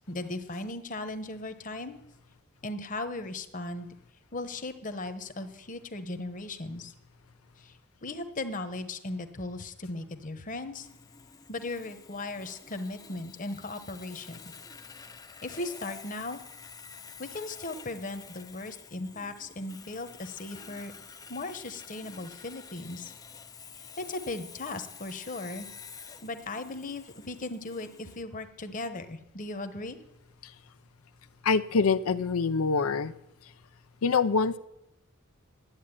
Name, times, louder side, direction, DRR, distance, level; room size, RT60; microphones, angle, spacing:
voice 1, 0.1-2.0 2.6-3.9 4.3-6.9 7.6-10.9 11.5-14.4 15.4-16.4 17.2-20.9 21.3-23.1 23.8-25.7 26.2-30.0, left 2 dB, 40° left, 9 dB, 1.0 m, -37 dB
Sawing, 10.7-28.2, left 6 dB, 15° left, 0.5 m, -49 dB
voice 2, 31.4-33.1 34.0-34.6, left 5 dB, 85° left, 12 dB, 0.5 m, -25 dB
10.5 x 8.4 x 10.0 m, 0.90 s
head